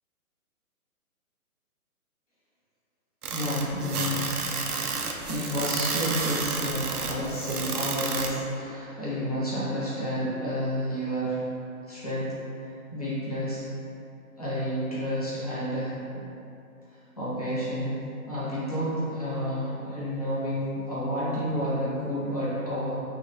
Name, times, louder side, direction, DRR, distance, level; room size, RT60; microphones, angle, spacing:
sound 1, 3.2-8.3, right 4 dB, 90° right, 0.6 m, -31 dB
voice 1, 3.3-4.3 5.3-11.4 11.9-12.4 12.9-13.6 14.4-15.9 17.2-23.0, equal, 25° left, -11 dB, 0.6 m, -30 dB
2.9 x 2.8 x 3.0 m, 2.7 s
hypercardioid pair, 175°, 44 cm